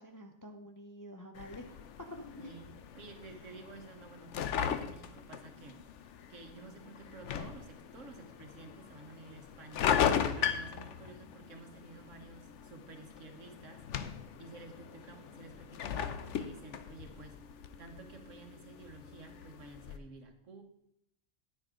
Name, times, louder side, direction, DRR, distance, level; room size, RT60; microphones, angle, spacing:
voice 1, 0.0-1.8 2.1-2.5, left 1 dB, 20° left, 4 dB, 0.6 m, -48 dB
sound 1, 1.4-20.0, left 8 dB, 65° left, 1.0 m, -38 dB
voice 2, 2.9-5.8 6.3-9.9 10.3-13.8 14.4-17.4 17.8-20.6, right 3 dB, 70° right, 4 dB, 1.7 m, -52 dB
10.0 x 9.8 x 3.7 m, 0.78 s
omnidirectional pair, 1.4 m